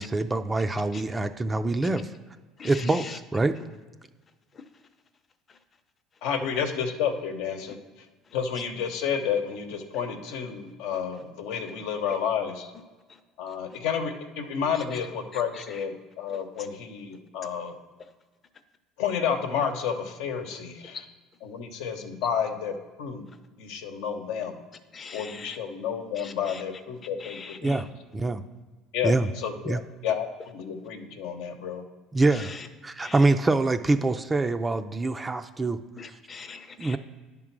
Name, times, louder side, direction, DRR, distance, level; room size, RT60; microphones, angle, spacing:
voice 1, 0.0-2.0 2.6-3.0 3.3-3.5 27.6-27.8 28.1-28.4 29.0-29.3 29.7-29.8 32.1-32.5 32.8-35.8 36.8-37.0, right 2 dB, 15° right, 8 dB, 0.3 m, -24 dB
voice 2, 2.6-3.2 3.6-3.7 4.5-4.9 5.5-5.6 6.1-6.2 7.7-7.8 8.2-8.4 11.1-11.2 13.1-13.2 13.5-13.8 14.7-15.0 15.3-15.8 16.3-16.7 18.0-18.1 20.9-21.0 23.3-23.4 24.9-25.6 26.1-27.9 30.1-30.2 32.3-32.7 33.0-33.3 36.0-37.0, left 5 dB, 30° left, 9 dB, 0.7 m, -43 dB
voice 3, 6.2-7.8 8.3-12.7 13.4-17.7 19.0-21.0 21.5-23.2 23.6-24.6 25.1-27.8 28.9-30.3 30.5-31.8, left 7 dB, 80° left, 5 dB, 0.9 m, -30 dB
10.0 x 3.7 x 6.0 m, 1.3 s
cardioid pair, 125°, 0 cm